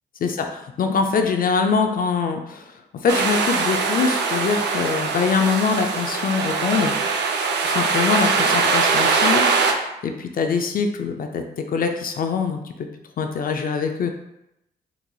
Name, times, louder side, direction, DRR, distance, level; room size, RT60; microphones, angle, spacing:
voice 1, 0.2-7.0 7.6-12.9 13.2-14.1, left 5 dB, 55° left, 5 dB, 0.4 m, -23 dB
sound 1, 3.1-9.7, right 4 dB, 75° right, 0.5 m, -21 dB
3.9 x 2.8 x 2.2 m, 0.86 s
cardioid pair, 70°, 18 cm